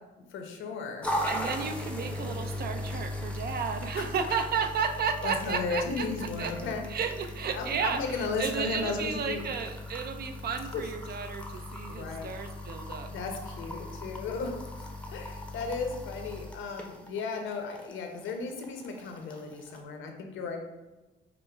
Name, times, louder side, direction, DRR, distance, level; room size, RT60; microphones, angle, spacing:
voice 1, 0.2-1.1 4.0-4.4 5.2-6.8 7.5-9.4 10.7-10.8 11.9-12.3 13.1-20.6, left 4 dB, 75° left, 4 dB, 0.8 m, -35 dB
sound 1, 1.0-19.8, left 1 dB, 5° left, 0.7 m, -39 dB
voice 2, 1.3-6.5 6.9-13.1, right 6 dB, 50° right, 7 dB, 0.5 m, -33 dB
5.2 x 2.1 x 4.4 m, 1.1 s
cardioid pair, 90°, 20 cm